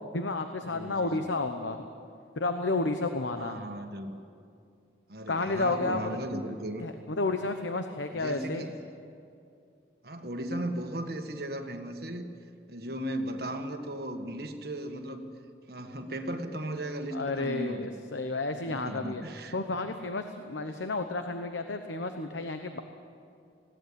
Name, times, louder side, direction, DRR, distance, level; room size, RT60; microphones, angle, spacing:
voice 1, 0.1-1.8 2.4-3.6 5.3-6.1 6.8-8.6 17.1-19.2 19.5-22.8, left 2 dB, 80° left, 7 dB, 1.0 m, -31 dB
voice 2, 0.7-1.3 3.4-4.1 5.1-6.8 8.1-8.9 10.0-12.3 12.7-15.2 15.7-17.9 18.5-19.6, right 1 dB, 55° right, 5 dB, 1.6 m, -36 dB
20.5 x 16.5 x 8.7 m, 2.4 s
head